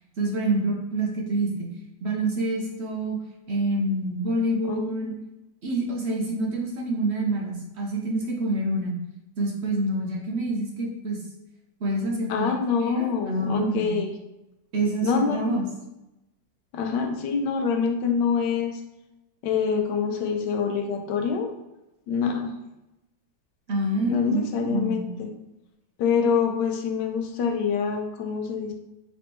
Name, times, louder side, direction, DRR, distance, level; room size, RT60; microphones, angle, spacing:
voice 1, 0.2-1.7 2.0-3.2 3.5-5.1 5.6-9.0 9.4-11.2 11.8-12.5 12.8-14.0 14.7-15.7 23.7-25.1, right 2 dB, 70° right, -1 dB, 0.6 m, -27 dB
voice 2, 4.6-5.1 12.3-14.1 15.0-15.6 16.7-18.8 19.4-21.5 22.1-22.5 24.0-25.3 26.0-28.7, left 6 dB, 75° left, 4 dB, 1.3 m, -26 dB
4.3 x 3.1 x 3.0 m, 0.95 s
omnidirectional pair, 2.0 m